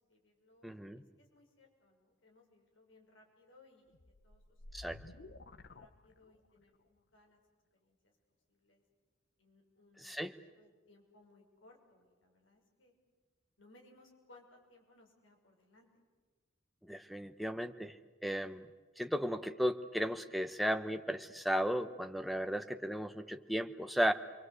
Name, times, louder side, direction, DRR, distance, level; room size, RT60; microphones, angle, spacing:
voice 1, 0.1-0.8 1.2-3.9 4.2-4.9 5.6-7.4 7.8-8.1 8.5-8.8 9.4-12.9 13.6-15.9, left 2 dB, 70° left, 1 dB, 6.4 m, -64 dB
voice 2, 0.6-1.0 4.7-5.0 10.0-10.3 16.8-17.9 18.2-18.7 19.0-24.1, equal, ahead, 10 dB, 1.0 m, -35 dB
sound 1, 3.9-6.6, left 2 dB, 55° left, 1.0 m, -53 dB
29.5 x 23.5 x 8.2 m, 1.4 s
head